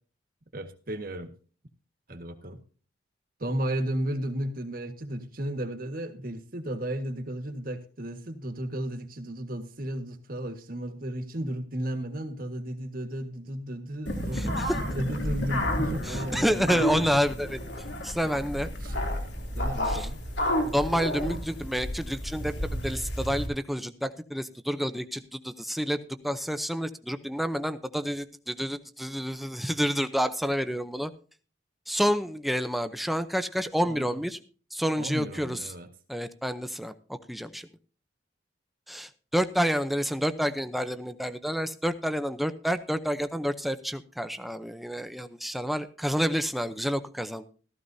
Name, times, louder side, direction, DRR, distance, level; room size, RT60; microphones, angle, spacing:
voice 1, 0.5-1.3 2.1-2.6 3.4-16.9 18.8-18.9 19.5-20.2 33.8-34.2 35.0-35.9, right 1 dB, 50° right, 7 dB, 1.6 m, -34 dB
sound 1, 14.1-23.5, equal, 75° left, 3.0 m, -31 dB
voice 2, 14.3-14.8 16.0-17.6 18.0-18.7 19.8-20.1 20.6-31.1 31.9-34.4 34.7-35.7 36.1-37.7 38.9-47.5, equal, ahead, 10 dB, 0.6 m, -29 dB
15.0 x 14.0 x 2.7 m, 0.39 s
head